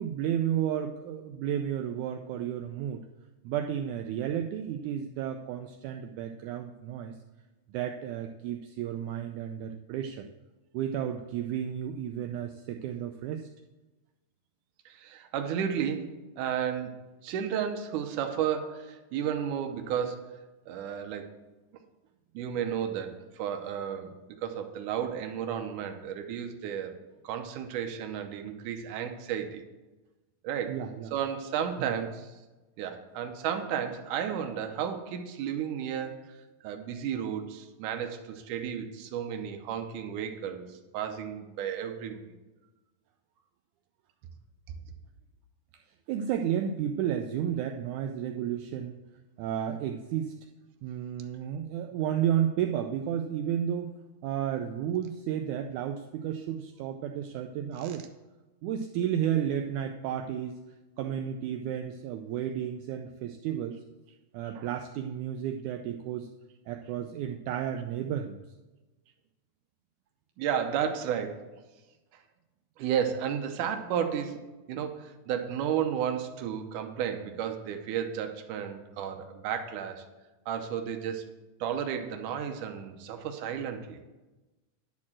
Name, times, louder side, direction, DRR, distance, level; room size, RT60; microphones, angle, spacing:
voice 1, 0.0-3.0 3.4-7.1 7.7-10.3 10.7-13.5 30.7-31.1 31.8-31.9 46.1-49.0 49.4-50.3 50.8-53.9 54.2-58.0 58.6-60.6 61.0-63.8 64.3-66.3 66.7-68.4, right 9 dB, 90° right, 4 dB, 1.7 m, -32 dB
voice 2, 14.9-20.4 20.7-21.3 22.3-27.0 27.2-29.6 30.4-30.8 31.1-32.3 32.8-36.3 36.6-42.3 64.6-64.7 70.4-71.5 72.1-72.2 72.8-74.4 74.7-80.1 80.5-81.3 81.6-84.0, right 8 dB, 75° right, 6 dB, 2.1 m, -33 dB
11.0 x 4.3 x 7.2 m, 1.1 s
omnidirectional pair, 4.0 m